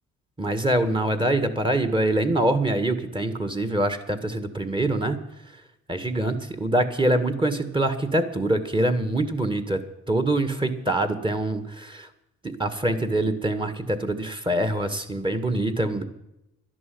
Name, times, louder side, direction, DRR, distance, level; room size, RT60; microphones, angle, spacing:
voice 1, 0.4-5.2 5.9-9.8 10.1-12.1 12.4-16.0, right 1 dB, 15° right, 10 dB, 1.8 m, -24 dB
12.0 x 11.0 x 7.8 m, 0.86 s
cardioid pair, 90°, 30 cm